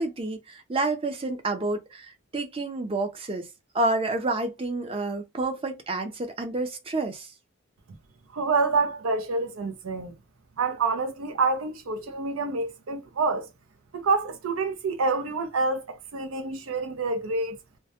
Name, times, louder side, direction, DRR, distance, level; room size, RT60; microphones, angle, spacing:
voice 1, 0.0-3.5 3.7-7.3, right 2 dB, 25° right, 0.4 m, -29 dB
voice 2, 8.3-10.1 10.6-13.5 13.9-17.6, right 3 dB, 90° right, 0.5 m, -27 dB
2.2 x 2.1 x 2.7 m
head